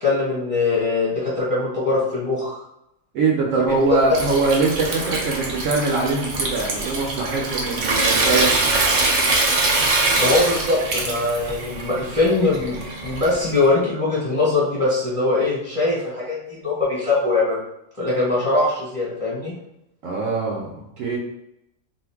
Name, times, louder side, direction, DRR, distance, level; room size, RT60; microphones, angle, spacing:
voice 1, 0.0-2.6 3.6-3.7 10.2-17.6 18.0-19.5, left 2 dB, 25° left, -7 dB, 1.1 m, -22 dB
voice 2, 3.1-8.8 20.0-21.2, right 3 dB, 70° right, -1 dB, 0.9 m, -22 dB
Water tap faucet / Sink (filling or washing) / Trickle dribble, 3.7-13.6, right 2 dB, 90° right, 0.4 m, -23 dB
2.5 x 2.5 x 3.4 m, 0.82 s
omnidirectional pair, 1.5 m